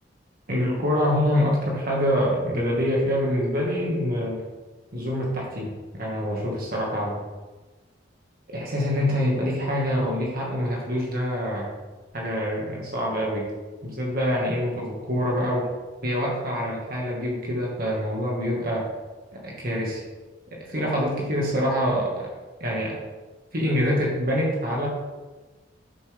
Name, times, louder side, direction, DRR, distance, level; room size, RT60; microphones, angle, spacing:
voice 1, 0.5-4.4 4.9-7.2 8.5-11.7 12.1-13.5 13.8-15.7 16.0-18.9 19.3-20.0 20.5-22.3 22.6-23.0 23.5-24.9, equal, 50° right, -3 dB, 1.9 m, -25 dB
8.9 x 7.1 x 3.5 m, 1.2 s
head